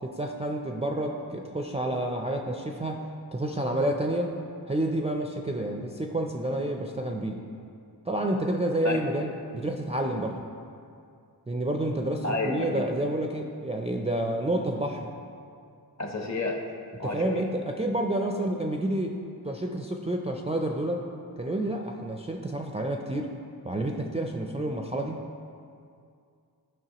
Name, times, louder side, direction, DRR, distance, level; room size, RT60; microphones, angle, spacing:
voice 1, 0.0-3.0 3.3-4.3 4.7-7.4 8.1-10.5 11.5-15.1 17.0-19.2 19.4-21.0 21.4-23.3 23.6-25.2, right 1 dB, 15° right, 1 dB, 0.4 m, -29 dB
voice 2, 12.2-12.8 16.0-16.6 17.0-17.4, left 2 dB, 40° left, 2 dB, 0.9 m, -30 dB
11.0 x 5.3 x 2.9 m, 2.4 s
wide cardioid pair, 95°, 40 cm